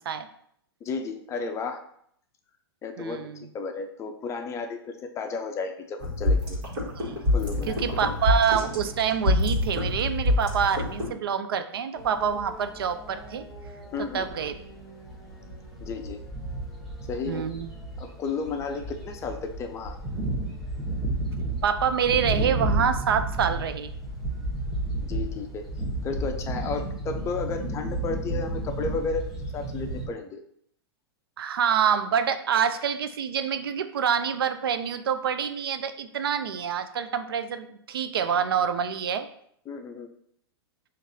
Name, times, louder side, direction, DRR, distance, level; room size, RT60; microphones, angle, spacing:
voice 1, 0.8-1.8 2.8-3.2 3.5-6.6 7.3-7.8 13.9-14.3 15.8-16.2 17.1-17.5 18.0-20.0 25.0-25.7 26.0-30.4 39.7-40.1, left 4 dB, 20° left, 5 dB, 0.5 m, -33 dB
voice 2, 3.0-3.5 7.0-7.1 7.7-13.5 14.1-14.6 17.2-17.7 21.6-23.9 31.4-39.3, right 7 dB, 65° right, 10 dB, 0.4 m, -26 dB
sound 1, 6.0-11.1, left 2 dB, 50° right, 1.5 m, -26 dB
sound 2, 12.0-30.1, right 2 dB, ahead, 1.1 m, -33 dB
6.1 x 2.5 x 2.7 m, 0.67 s
figure-of-eight pair, 105°, 13 cm